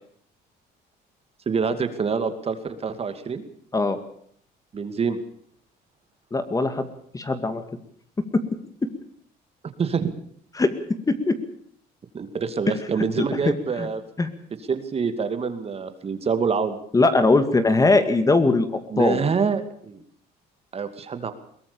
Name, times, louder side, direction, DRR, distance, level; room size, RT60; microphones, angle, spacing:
voice 1, 1.5-3.4 4.7-5.2 9.8-10.1 12.1-14.0 14.7-16.8 18.9-20.0 20.7-21.3, right 5 dB, 35° right, 9 dB, 2.5 m, -26 dB
voice 2, 6.3-6.9 7.1-7.6 10.6-10.7 11.1-11.3 13.2-13.3 13.8-13.9 14.2-14.3 16.9-19.2, left 3 dB, 20° left, 10 dB, 2.2 m, -20 dB
22.0 x 18.5 x 7.1 m, 0.63 s
cardioid pair, 110°, 17 cm